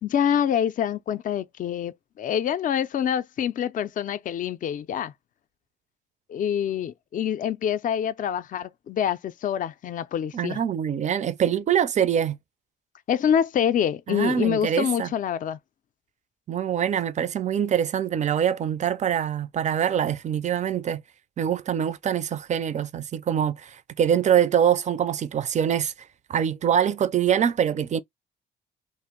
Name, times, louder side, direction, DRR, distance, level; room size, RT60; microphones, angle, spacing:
voice 1, 0.0-5.1 6.3-10.6 13.1-15.6, left 9 dB, 45° left, 0.4 m, -26 dB
voice 2, 10.3-12.4 14.1-15.1 16.5-21.0 21.4-25.9 26.3-28.0, right 9 dB, 35° right, 0.4 m, -24 dB
2.5 x 2.0 x 3.5 m
cardioid pair, 90°, 20 cm